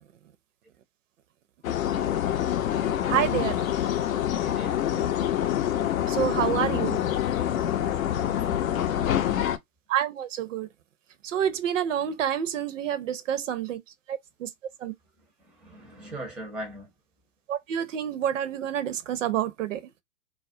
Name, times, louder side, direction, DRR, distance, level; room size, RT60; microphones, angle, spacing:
sound 1, 1.6-9.6, left 11 dB, 65° left, 0.6 m, -26 dB
voice 1, 3.1-3.6 6.1-7.0 9.9-10.7 11.2-13.8 14.1-14.5 14.8-14.9 17.5-19.8, right 10 dB, 55° right, 0.6 m, -28 dB
voice 2, 4.4-4.8 7.8-9.4 15.6-16.9, right 1 dB, ahead, 0.6 m, -41 dB
2.3 x 2.1 x 2.6 m
hypercardioid pair, 115°, 44 cm